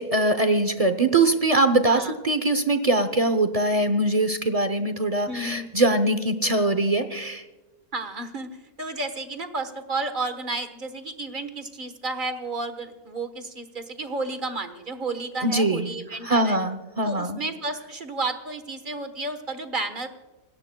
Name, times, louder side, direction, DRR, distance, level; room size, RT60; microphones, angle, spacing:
voice 1, 0.0-7.4 15.4-15.9 16.2-17.4, right 2 dB, 55° right, 9 dB, 0.4 m, -22 dB
voice 2, 5.2-5.7 7.9-8.5 8.8-16.6 17.0-20.1, right 2 dB, 35° right, 8 dB, 1.2 m, -32 dB
27.5 x 18.0 x 2.2 m, 1.2 s
omnidirectional pair, 1.8 m